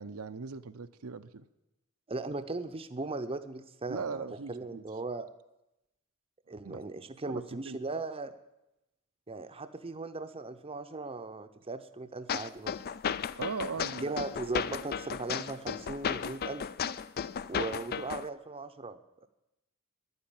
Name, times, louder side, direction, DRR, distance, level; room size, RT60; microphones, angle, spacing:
voice 1, 0.0-1.4 3.9-4.8 6.6-6.8 7.2-7.8 13.4-14.2, right 5 dB, 80° right, 9 dB, 0.7 m, -39 dB
voice 2, 2.1-5.3 6.5-8.3 9.3-12.7 13.7-16.6 17.5-19.3, right 3 dB, 25° right, 9 dB, 0.7 m, -38 dB
sound 1, 12.3-18.3, left 7 dB, 45° left, 0.4 m, -35 dB
11.0 x 9.8 x 8.9 m, 0.92 s
head